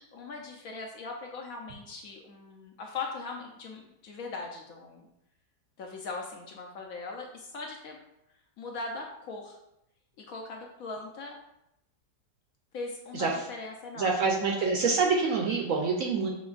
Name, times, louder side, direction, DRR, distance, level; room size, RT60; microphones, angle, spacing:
voice 1, 0.1-5.1 5.8-8.0 8.6-9.6 10.2-11.4 12.7-14.3, left 3 dB, 70° left, 1 dB, 0.9 m, -40 dB
voice 2, 14.0-16.3, right 4 dB, 70° right, 0 dB, 0.8 m, -26 dB
6.0 x 3.2 x 2.4 m, 0.81 s
omnidirectional pair, 1.8 m